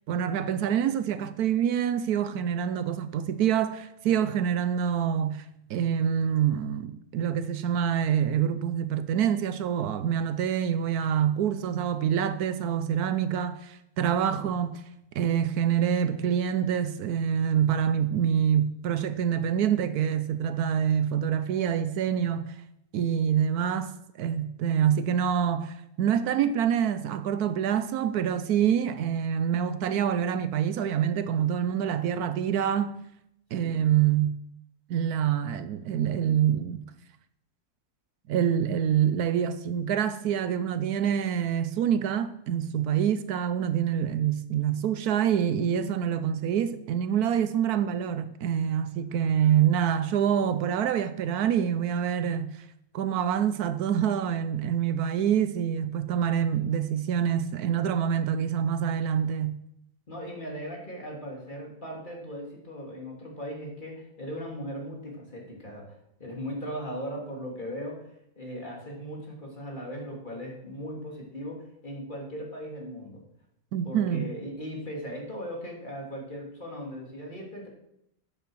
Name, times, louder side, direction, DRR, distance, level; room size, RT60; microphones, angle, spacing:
voice 1, 0.1-5.4 5.7-14.8 15.1-22.5 22.9-33.0 33.5-34.4 34.9-36.8 38.3-52.6 52.9-59.6 73.7-74.3, right 9 dB, 75° right, 1.1 m, -26 dB
voice 2, 60.1-73.2 73.8-77.7, equal, 30° left, 2.7 m, -38 dB
9.7 x 7.7 x 6.2 m
omnidirectional pair, 1.6 m